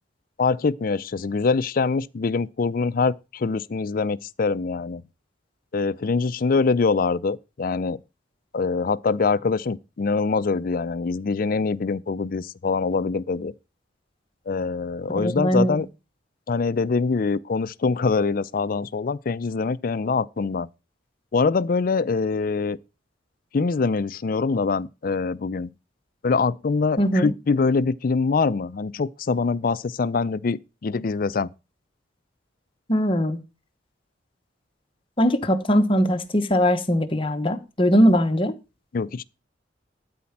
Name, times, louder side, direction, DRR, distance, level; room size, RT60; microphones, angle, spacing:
voice 1, 0.4-5.0 5.7-8.0 8.5-13.5 14.5-15.9 16.5-20.7 21.3-22.8 23.5-25.7 26.2-31.5 38.9-39.2, left 4 dB, 50° left, 0.4 m, -24 dB
voice 2, 15.1-15.8 27.0-27.3 32.9-33.4 35.2-38.5, equal, 30° left, 1.0 m, -20 dB
12.5 x 4.3 x 7.2 m
head